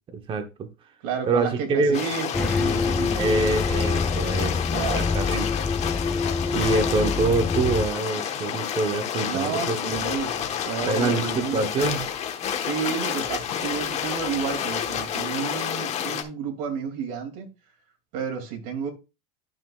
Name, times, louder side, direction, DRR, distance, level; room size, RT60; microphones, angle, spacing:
voice 1, 0.1-0.7 1.3-2.0 3.2-4.6 4.9-5.4 6.5-10.0 10.9-12.0, right 3 dB, 30° right, 1.0 m, -25 dB
voice 2, 1.0-3.2 4.7-5.1 9.3-11.7 12.6-17.5 18.1-18.9, right 6 dB, 70° right, 2.5 m, -31 dB
sound 1, 1.9-16.2, left 8 dB, 35° left, 1.2 m, -29 dB
sound 2, 2.3-7.9, left 4 dB, 5° left, 0.4 m, -26 dB
12.0 x 5.8 x 2.3 m
cardioid pair, 140°, 18 cm